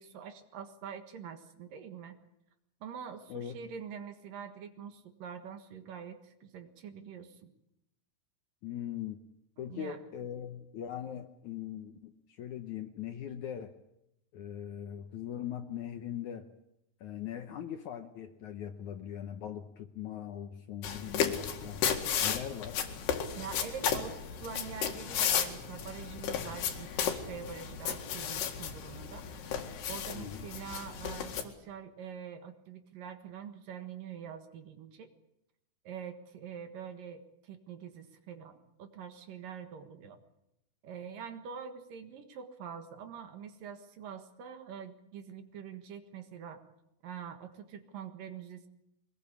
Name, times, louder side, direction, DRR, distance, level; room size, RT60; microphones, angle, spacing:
voice 1, 0.0-2.2 2.8-7.5 9.6-10.0 23.3-35.1 35.8-40.2 40.8-46.6 47.0-48.7, right 7 dB, 65° right, 8 dB, 3.1 m, -45 dB
voice 2, 8.6-9.2 9.6-13.7 14.3-16.5 17.0-21.8 22.2-22.8 30.1-30.4, left 10 dB, 70° left, 7 dB, 1.9 m, -40 dB
sound 1, 20.8-31.4, left 8 dB, 85° left, 4.1 m, -34 dB
24.0 x 21.0 x 8.6 m, 0.83 s
omnidirectional pair, 4.6 m